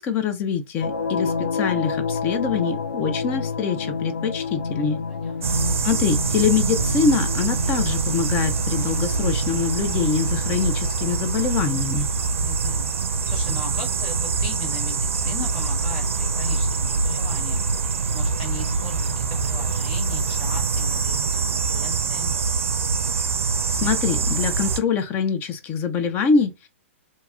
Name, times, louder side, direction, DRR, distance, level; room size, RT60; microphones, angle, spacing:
voice 1, 0.0-5.0 5.7-12.1 23.7-26.7, left 6 dB, 25° left, 0.4 m, -24 dB
sound 1, 0.8-11.1, left 5 dB, 70° left, 0.6 m, -30 dB
voice 2, 5.1-5.7 12.4-22.3, left 5 dB, 50° left, 1.6 m, -39 dB
sound 2, 5.4-24.8, right 4 dB, 75° right, 0.4 m, -24 dB
2.9 x 2.6 x 2.3 m
hypercardioid pair, 120°, 7 cm